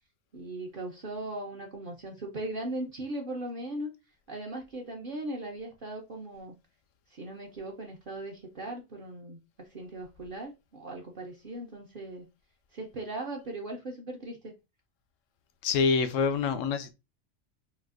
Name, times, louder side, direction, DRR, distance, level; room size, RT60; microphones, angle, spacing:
voice 1, 0.3-3.9 4.3-6.5 7.1-12.3 12.7-14.5, right 1 dB, 55° right, 0.7 m, -38 dB
voice 2, 15.6-16.9, left 5 dB, 90° left, 1.0 m, -26 dB
4.2 x 2.3 x 2.4 m
omnidirectional pair, 1.3 m